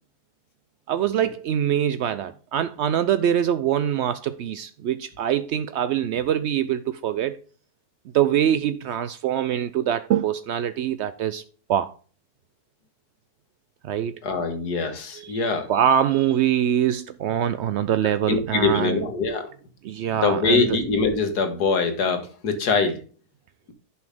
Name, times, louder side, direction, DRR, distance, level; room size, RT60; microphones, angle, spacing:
voice 1, 0.9-7.4 8.1-11.4 11.7-11.9 13.8-14.1 15.2-19.0 19.8-20.8, right 10 dB, 80° right, 0.6 m, -24 dB
voice 2, 14.2-15.7 18.3-19.5 20.2-23.0, left 4 dB, 80° left, 2.0 m, -23 dB
11.0 x 5.6 x 3.6 m
omnidirectional pair, 1.7 m